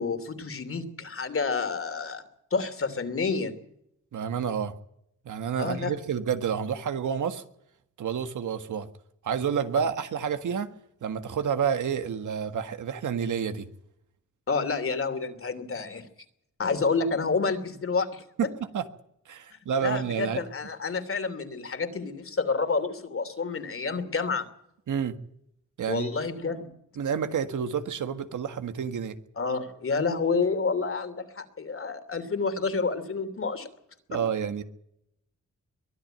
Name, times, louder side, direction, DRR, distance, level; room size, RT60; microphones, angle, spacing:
voice 1, 0.0-2.2 2.5-3.6 5.6-5.9 14.5-16.1 16.6-18.2 19.8-24.5 25.9-26.7 29.4-33.7 34.1-34.2, left 4 dB, 45° left, 9 dB, 2.9 m, -29 dB
voice 2, 4.1-4.7 5.3-7.4 8.0-8.9 9.2-10.7 11.0-13.7 18.7-18.9 19.3-20.4 24.9-25.1 25.8-26.1 27.0-29.2 34.1-34.6, right 7 dB, 80° right, 9 dB, 1.7 m, -29 dB
23.0 x 12.5 x 8.9 m, 0.75 s
wide cardioid pair, 110°, 30 cm